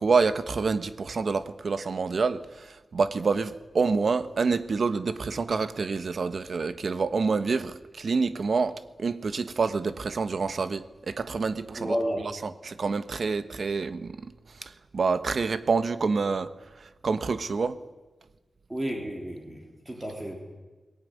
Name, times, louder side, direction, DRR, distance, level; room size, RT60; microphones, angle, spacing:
voice 1, 0.0-11.9 12.4-14.3 14.6-16.5 16.8-17.8, right 4 dB, 55° right, 1.1 m, -27 dB
voice 2, 11.7-12.2 18.7-20.4, equal, 15° right, 3.5 m, -31 dB
22.5 x 19.0 x 9.4 m
wide cardioid pair, 125°, 0 cm